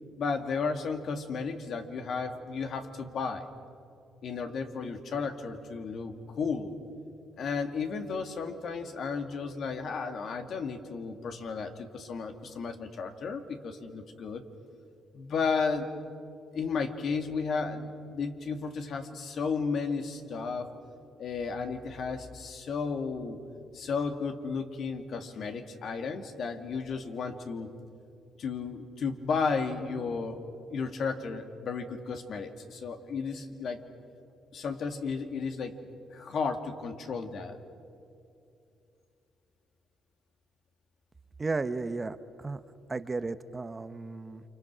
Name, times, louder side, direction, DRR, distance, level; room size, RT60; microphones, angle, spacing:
voice 1, 0.2-3.5 4.2-6.7 7.4-14.4 15.1-15.9 16.5-20.7 21.2-23.4 23.7-27.7 28.4-30.4 30.7-33.8 34.5-35.8 36.1-37.6, left 5 dB, 60° left, 6 dB, 2.2 m, -33 dB
voice 2, 41.4-42.6 42.9-44.4, right 3 dB, 25° right, 12 dB, 0.9 m, -34 dB
29.5 x 26.0 x 6.2 m, 2.6 s
cardioid pair, 90°, 0 cm